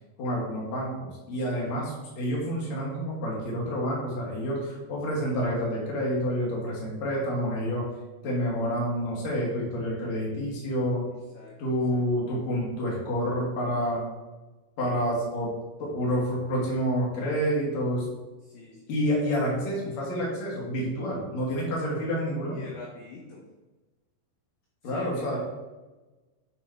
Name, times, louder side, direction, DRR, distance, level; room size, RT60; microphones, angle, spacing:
voice 1, 0.2-7.8 8.2-11.0 11.6-14.0 14.8-15.5 15.8-18.0 18.9-22.6 24.8-25.4, equal, 60° left, -4 dB, 1.8 m, -28 dB
voice 2, 1.3-1.7 11.3-11.6 11.9-12.0 18.4-18.9 22.5-23.5 24.8-25.4, left 5 dB, 90° left, -1 dB, 2.3 m, -45 dB
8.5 x 3.0 x 4.3 m, 1.2 s
omnidirectional pair, 5.7 m